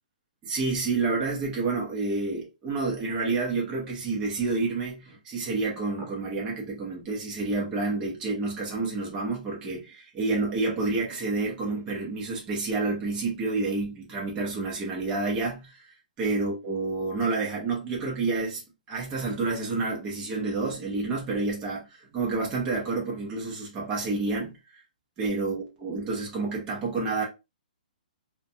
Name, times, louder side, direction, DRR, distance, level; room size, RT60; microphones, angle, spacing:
voice 1, 0.4-15.8 16.2-24.8 25.2-27.2, right 3 dB, 15° right, 0.7 m, -29 dB
2.5 x 2.2 x 2.6 m
hypercardioid pair, 160°, 5 cm